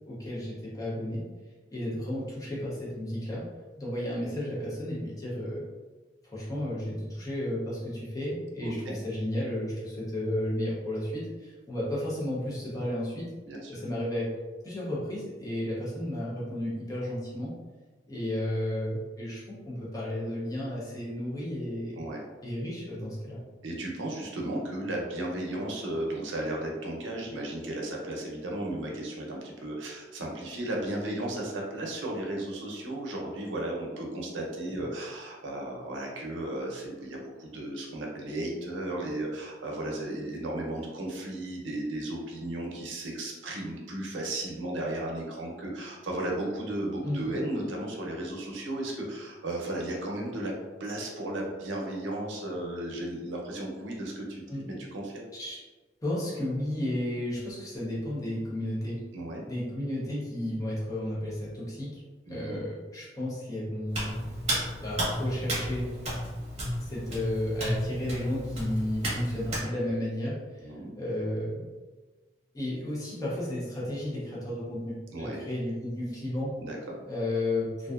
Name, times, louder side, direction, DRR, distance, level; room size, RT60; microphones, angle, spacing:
voice 1, 0.1-1.2 1.7-3.5 3.8-5.6 6.2-13.3 13.7-14.3 14.6-17.5 18.1-22.0 22.4-23.4 47.0-47.3 54.5-54.7 55.3-55.6 56.0-59.0 59.5-62.0 62.3-64.2 64.8-65.9 66.8-71.7 72.5-76.5 77.1-77.9, left 1 dB, 20° left, -6 dB, 0.6 m, -33 dB
voice 2, 8.6-9.0 13.4-13.8 21.9-22.3 23.6-50.5 50.8-55.2 59.1-59.4 62.3-62.6 70.6-70.9 75.1-75.4 76.6-76.9, right 1 dB, 90° right, -1 dB, 0.6 m, -35 dB
Hands, 63.9-69.7, equal, 35° right, 0.8 m, -32 dB
2.5 x 2.2 x 2.3 m, 1.3 s
head